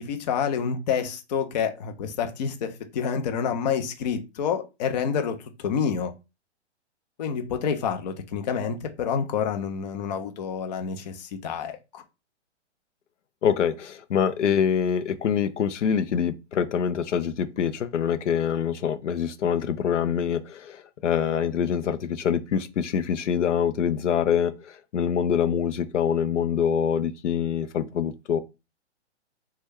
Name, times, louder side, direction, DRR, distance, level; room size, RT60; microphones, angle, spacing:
voice 1, 0.0-6.1 7.2-12.0, left 7 dB, 40° left, 0.5 m, -28 dB
voice 2, 13.4-28.4, left 8 dB, 90° left, 0.5 m, -25 dB
3.0 x 2.2 x 3.4 m
hypercardioid pair, 140°, 35 cm